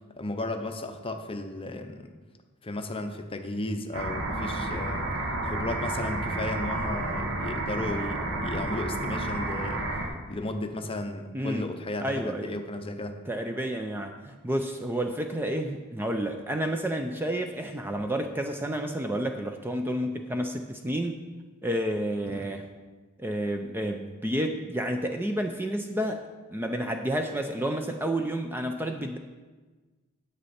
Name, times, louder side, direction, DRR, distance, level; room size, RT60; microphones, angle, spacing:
voice 1, 0.2-2.1 2.6-5.1 5.4-9.8 10.3-13.2 22.3-22.5, left 2 dB, 25° left, 6 dB, 0.7 m, -34 dB
sound 1, 3.9-10.1, right 2 dB, 60° right, 1.3 m, -31 dB
voice 2, 11.3-11.7 12.0-12.6 13.3-21.2 21.6-22.6 23.2-26.2 26.5-29.2, right 1 dB, 10° right, 5 dB, 0.4 m, -30 dB
9.6 x 8.1 x 4.2 m, 1.3 s
head